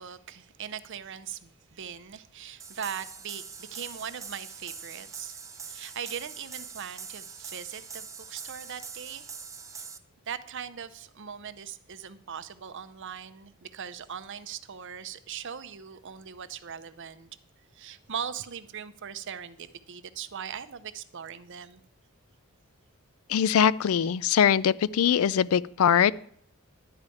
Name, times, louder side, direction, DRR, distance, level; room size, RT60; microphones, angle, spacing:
voice 1, 0.0-9.2 9.7-9.8 10.3-17.3 17.7-21.8 24.0-24.1, right 8 dB, 55° right, 12 dB, 0.6 m, -40 dB
sound 1, 2.6-10.0, right 6 dB, 15° right, 0.5 m, -43 dB
voice 2, 23.3-26.1, left 8 dB, 70° left, 20 dB, 0.4 m, -22 dB
11.0 x 4.9 x 8.4 m, 0.64 s
head